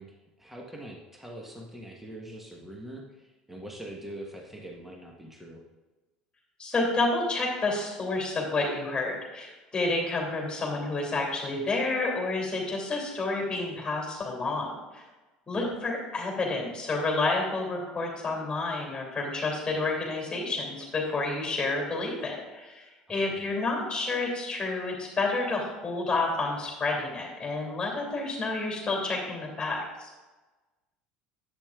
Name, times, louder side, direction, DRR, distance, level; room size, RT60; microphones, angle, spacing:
voice 1, 0.0-5.6 15.5-15.8 23.2-23.4, right 1 dB, 5° right, -1 dB, 1.3 m, -43 dB
voice 2, 6.6-15.0 15.5-30.1, left 3 dB, 20° left, 0 dB, 2.7 m, -30 dB
10.5 x 8.3 x 2.4 m, 1.2 s
figure-of-eight pair, 70°, 4 cm